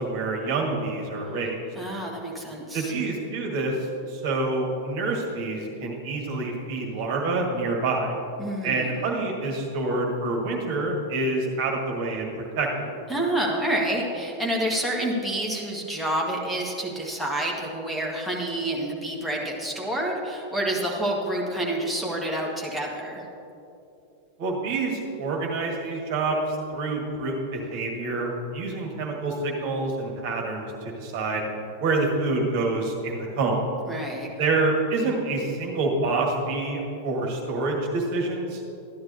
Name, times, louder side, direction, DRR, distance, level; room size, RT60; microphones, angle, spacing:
voice 1, 0.0-1.6 2.7-8.1 8.6-12.3 12.5-12.9 24.4-31.5 31.8-33.6 34.4-38.6, right 3 dB, 50° right, 0 dB, 1.7 m, -27 dB
voice 2, 1.8-2.9 8.4-8.9 13.1-23.2 33.9-34.3, right 1 dB, ahead, -3 dB, 1.7 m, -28 dB
13.5 x 10.5 x 2.8 m, 2.8 s
figure-of-eight pair, 90°, 0 cm